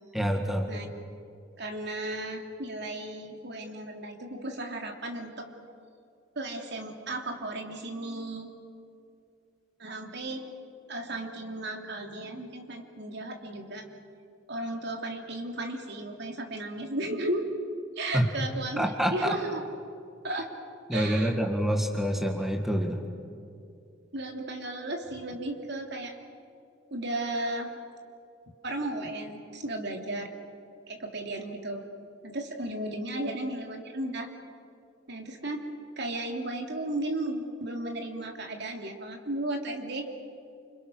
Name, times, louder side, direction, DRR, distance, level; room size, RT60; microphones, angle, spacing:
voice 1, 0.1-0.7 18.1-18.3 18.8-19.3 20.9-23.0, equal, ahead, 2 dB, 1.9 m, -27 dB
voice 2, 1.6-5.5 6.3-8.5 9.8-10.4 10.9-13.8 14.5-17.4 18.0-19.6 20.2-20.5 20.9-21.4 24.1-26.2 26.9-27.7 28.6-30.3 30.9-31.8 32.2-34.3 35.1-35.6 36.0-40.1, right 1 dB, 60° right, 2 dB, 3.1 m, -34 dB
29.0 x 27.5 x 6.4 m, 2.5 s
head